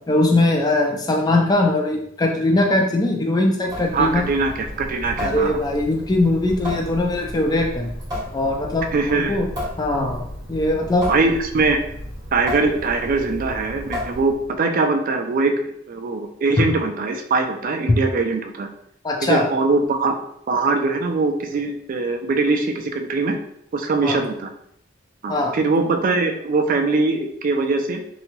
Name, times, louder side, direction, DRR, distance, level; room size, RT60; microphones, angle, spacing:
voice 1, 0.1-4.2 5.2-7.9 8.3-8.9 9.1-9.5 9.8-10.2 10.5-11.1 19.0-19.4 24.0-24.2 25.3-25.6, left 2 dB, 20° left, 1 dB, 0.4 m, -20 dB
Water tap faucet / Sink (filling or washing) / Drip, 3.6-14.6, equal, 20° right, 1.1 m, -33 dB
voice 2, 3.9-5.6 8.9-9.4 11.1-11.8 12.3-18.7 19.2-20.2 20.5-23.4 23.7-24.5 25.2-28.0, right 3 dB, 45° right, 5 dB, 0.3 m, -22 dB
2.7 x 2.2 x 2.9 m, 0.71 s
head